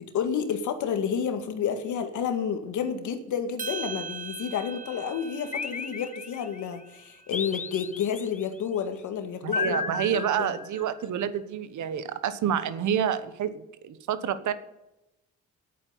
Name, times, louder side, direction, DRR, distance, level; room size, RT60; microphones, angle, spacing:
voice 1, 0.1-9.8 10.1-10.6, left 7 dB, 75° left, 8 dB, 2.0 m, -30 dB
sound 1, 3.6-8.0, right 5 dB, 25° right, 1.3 m, -41 dB
sound 2, 5.5-6.7 7.3-8.5 9.5-11.0, left 5 dB, 25° left, 0.7 m, -34 dB
voice 2, 9.4-14.5, right 9 dB, 75° right, 13 dB, 1.3 m, -28 dB
11.0 x 8.9 x 9.3 m, 0.91 s
cardioid pair, 90°, 30 cm